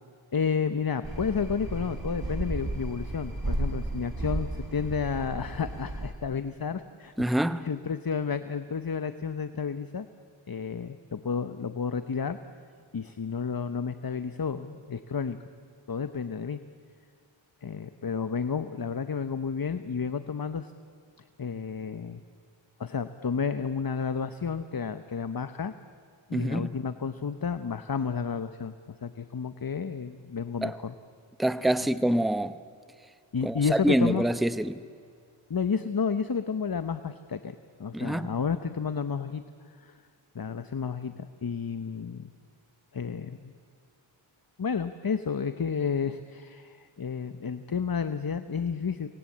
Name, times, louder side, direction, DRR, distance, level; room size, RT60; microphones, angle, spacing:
voice 1, 0.3-7.1 7.6-10.1 10.5-12.4 12.9-15.4 15.9-16.6 17.6-20.7 21.4-22.2 22.8-25.7 26.3-30.9 33.3-34.3 35.5-37.5 37.8-40.0 40.3-42.3 42.9-43.5 44.6-49.1, left 6 dB, 45° left, 0.9 m, -31 dB
sound 1, 1.0-6.1, right 2 dB, 45° right, 3.2 m, -33 dB
voice 2, 7.2-7.7 26.3-26.7 30.6-30.7 31.4-32.6 33.4-34.8 37.9-38.3, right 1 dB, ahead, 0.8 m, -26 dB
25.0 x 20.0 x 8.5 m
wide cardioid pair, 40°, 49 cm